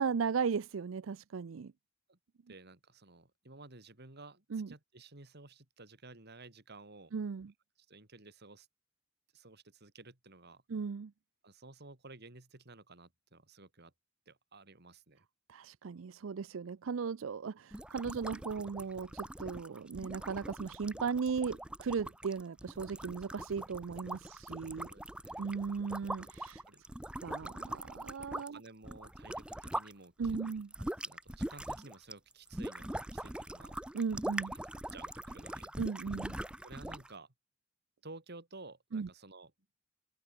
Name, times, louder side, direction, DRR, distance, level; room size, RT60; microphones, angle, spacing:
voice 1, 0.0-1.7 4.5-4.7 7.1-7.5 10.7-11.1 15.5-24.9 25.4-26.6 27.2-28.6 30.2-30.7 33.9-34.5 35.8-36.4 38.9-39.1, right 5 dB, 85° right, 0.5 m, -36 dB
voice 2, 2.5-7.1 7.4-7.5 7.9-8.7 9.3-10.6 11.4-13.9 14.3-15.3 24.3-25.5 26.6-26.8 28.5-30.4 30.8-33.8 34.5-35.7 36.6-37.3 38.0-39.5, right 3 dB, 55° right, 3.2 m, -54 dB
sound 1, 17.7-29.9 30.2-37.1, right 1 dB, 5° right, 0.4 m, -42 dB
head